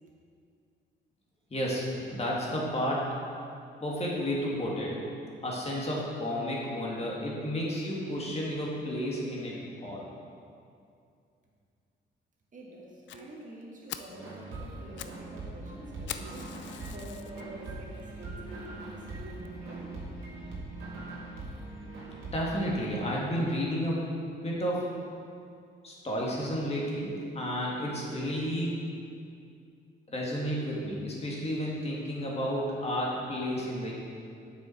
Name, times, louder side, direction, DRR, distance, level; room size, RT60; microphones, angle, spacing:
voice 1, 1.5-3.1 3.8-5.1 5.4-10.1 22.3-24.1 24.4-24.9 25.8-28.8 30.1-33.9, equal, 30° left, -4 dB, 1.9 m, -32 dB
voice 2, 12.5-20.1, right 1 dB, 40° right, -2 dB, 1.8 m, -47 dB
Fire, 13.1-13.2 13.6-13.7 13.9-14.2 14.7-15.2 15.5-15.6 16.1-17.4 18.0-18.1 18.6-18.7 19.0-19.1 19.4-19.5, left 10 dB, 70° left, 0.4 m, -42 dB
sound 1, 14.1-22.3, right 2 dB, 90° right, 1.7 m, -41 dB
7.4 x 5.8 x 4.4 m, 2.4 s
cardioid pair, 90°, 20 cm